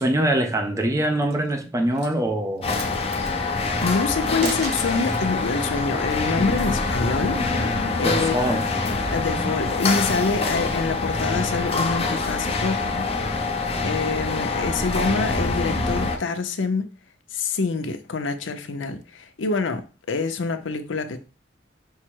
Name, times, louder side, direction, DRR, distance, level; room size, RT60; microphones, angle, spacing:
voice 1, 0.0-2.7 4.4-4.5 8.0-8.7, right 1 dB, 15° right, 0.4 m, -23 dB
sound 1, 1.0-1.5 1.9-2.2 2.6-3.3 4.2-5.3 6.8-7.9, right 2 dB, 60° right, 1.1 m, -36 dB
sound 2, 2.6-16.2, left 3 dB, 30° left, 0.7 m, -25 dB
voice 2, 3.6-8.4 9.1-13.0 13.5-16.9 17.3-21.2, left 4 dB, 80° left, 0.6 m, -26 dB
5.5 x 2.0 x 4.6 m
head